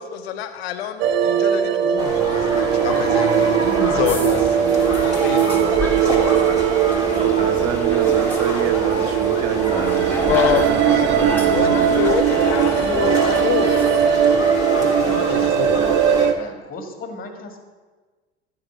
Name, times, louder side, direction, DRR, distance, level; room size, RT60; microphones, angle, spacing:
voice 1, 0.0-6.2 10.3-13.1 13.4-15.8, left 8 dB, 60° left, 8 dB, 1.1 m, -27 dB
sound 1, 1.0-16.3, right 9 dB, 35° right, 0.5 m, -19 dB
sound 2, 2.0-16.3, left 1 dB, 10° right, 3.1 m, -28 dB
sound 3, 2.3-14.1, left 2 dB, 5° left, 1.7 m, -32 dB
voice 2, 3.7-4.2 7.1-12.0, right 6 dB, 55° right, 8 dB, 1.0 m, -29 dB
voice 3, 11.5-16.0 16.3-17.6, left 3 dB, 25° left, 5 dB, 1.8 m, -33 dB
13.5 x 5.0 x 7.2 m, 1.3 s
figure-of-eight pair, 70°, 34 cm